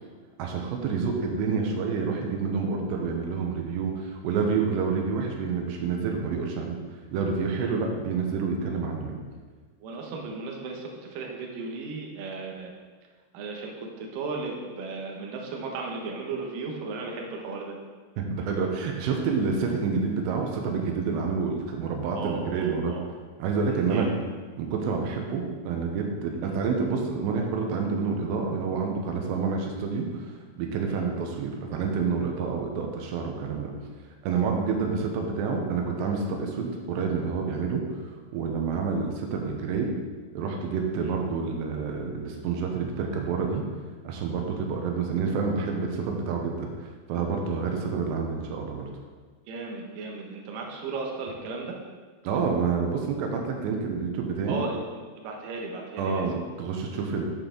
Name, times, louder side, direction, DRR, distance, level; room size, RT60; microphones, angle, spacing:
voice 1, 0.4-6.8 7.1-9.2 18.2-22.9 23.4-24.2 24.6-33.7 34.2-37.8 38.3-39.9 40.3-43.6 44.0-48.9 52.2-54.6 56.0-57.3, right 5 dB, 85° right, 1 dB, 3.0 m, -28 dB
voice 2, 9.8-12.7 13.3-17.8 22.2-23.1 23.9-24.1 30.9-31.0 41.0-41.1 49.5-51.8 54.5-54.8 55.2-56.3, right 4 dB, 70° right, 0 dB, 2.2 m, -35 dB
7.9 x 6.9 x 3.8 m, 1.4 s
omnidirectional pair, 5.0 m